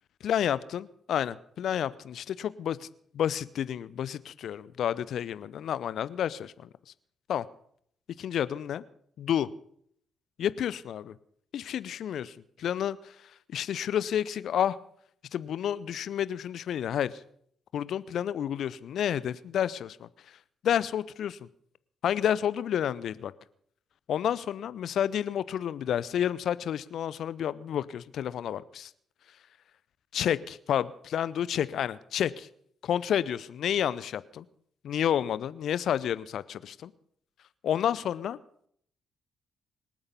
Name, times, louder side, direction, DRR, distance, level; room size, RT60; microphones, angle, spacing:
voice 1, 0.2-2.9 3.1-6.7 7.3-7.4 8.2-8.8 9.2-9.5 10.4-11.1 11.5-13.0 13.5-14.8 15.3-17.1 17.7-20.1 20.6-21.4 22.0-23.3 24.1-28.9 30.1-32.5 32.8-34.4 34.8-36.9 37.6-38.4, left 9 dB, 60° left, 18 dB, 0.6 m, -30 dB
25.5 x 8.8 x 5.4 m, 0.66 s
figure-of-eight pair, 40°, 0 cm